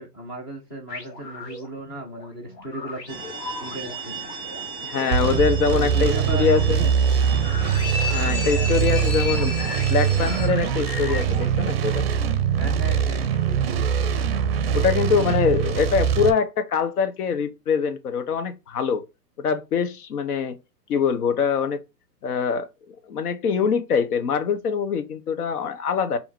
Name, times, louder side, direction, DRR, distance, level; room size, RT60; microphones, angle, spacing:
voice 1, 0.0-3.2 3.6-4.2 5.6-6.9 8.5-9.1 12.5-14.2 14.7-14.9, right 2 dB, 15° left, 0.4 m, -36 dB
sound 1, 0.9-12.0, left 3 dB, 80° left, 1.7 m, -40 dB
sound 2, 3.1-10.5, left 1 dB, ahead, 2.3 m, -33 dB
voice 2, 4.8-6.8 8.1-9.6 9.9-12.1 14.7-19.1 19.4-20.6 20.9-21.8 22.2-22.7 23.1-26.2, left 6 dB, 65° left, 1.0 m, -23 dB
sound 3, 5.1-16.3, right 8 dB, 40° right, 0.5 m, -23 dB
3.6 x 2.8 x 4.3 m
hypercardioid pair, 135°, 48 cm